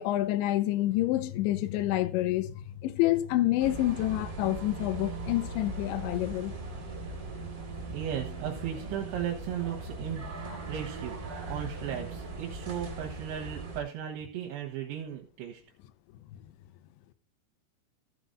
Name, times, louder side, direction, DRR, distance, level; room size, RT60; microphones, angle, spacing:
voice 1, 0.0-6.5, left 15 dB, 80° left, 3.0 m, -28 dB
sound 1, 3.6-13.8, right 3 dB, 45° right, 1.5 m, -39 dB
voice 2, 7.9-15.6, right 10 dB, 75° right, 3.7 m, -36 dB
15.5 x 6.0 x 4.0 m
omnidirectional pair, 5.6 m